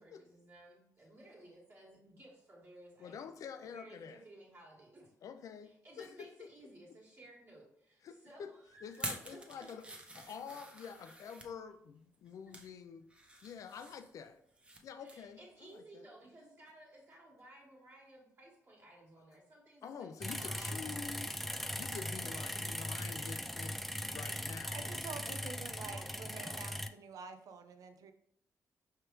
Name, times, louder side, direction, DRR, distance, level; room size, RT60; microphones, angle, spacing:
voice 1, 0.0-3.2 3.6-5.1 5.6-9.9 15.0-20.1 20.4-20.8 22.2-22.8 24.8-25.0 25.8-26.7, right 1 dB, 50° right, -5 dB, 1.5 m, -57 dB
voice 2, 3.0-4.2 5.2-6.5 8.0-8.5 8.8-9.9 10.1-13.0 13.4-14.4 14.8-16.1 19.8-21.4 21.8-23.8 24.1-24.9 25.3-25.9, left 6 dB, 70° left, 9 dB, 0.4 m, -48 dB
sound 1, 8.9-11.5 12.1-12.7 13.1-14.8 15.1-15.3 15.7-15.8, right 1 dB, 20° right, 0.7 m, -47 dB
sound 2, 20.2-26.9, left 1 dB, ahead, 0.3 m, -40 dB
voice 3, 24.6-28.1, right 5 dB, 75° right, 8 dB, 0.5 m, -48 dB
4.8 x 3.3 x 3.0 m, 0.71 s
cardioid pair, 75°, 6 cm